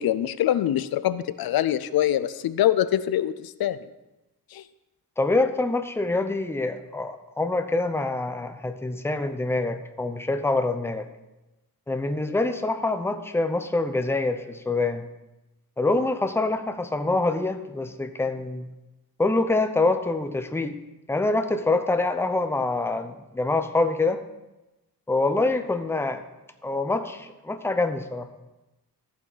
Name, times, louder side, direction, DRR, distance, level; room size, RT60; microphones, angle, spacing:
voice 1, 0.0-3.8 4.5-4.6, left 12 dB, 85° left, 14 dB, 0.5 m, -24 dB
voice 2, 5.2-11.1 11.9-15.0 15.8-18.7 19.2-20.8 21.1-24.2 25.1-26.2 26.6-28.3, left 2 dB, 5° left, 8 dB, 0.6 m, -25 dB
14.0 x 5.9 x 4.0 m, 1.0 s
wide cardioid pair, 120°, 35 cm